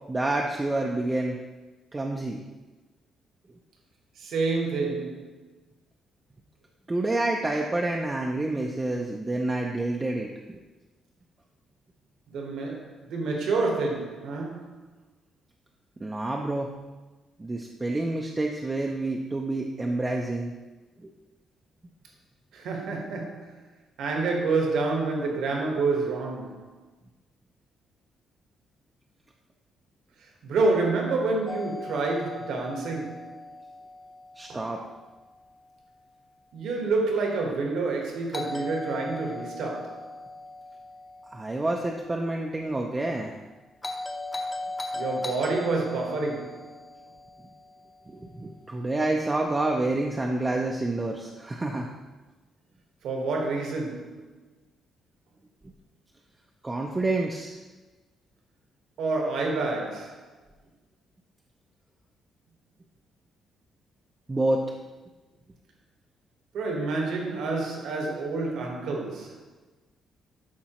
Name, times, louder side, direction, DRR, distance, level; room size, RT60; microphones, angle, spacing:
voice 1, 0.1-1.4 1.9-2.4 6.9-10.6 16.0-16.7 17.4-20.5 21.0-21.1 34.4-34.8 41.3-43.3 48.1-51.9 56.6-57.6 64.3-64.7, right 2 dB, 15° right, 0.4 m, -28 dB
voice 2, 4.2-5.4 12.3-14.8 22.5-23.6 24.0-26.7 30.4-33.3 34.5-34.7 36.5-40.1 44.9-46.8 53.0-54.2 59.0-60.3 66.5-69.4, right 3 dB, 70° right, 1.4 m, -28 dB
Doorbell, 31.5-35.5 38.3-42.5 43.8-48.2, left 2 dB, 15° left, 0.7 m, -39 dB
11.5 x 4.7 x 3.0 m
cardioid pair, 175°, 0 cm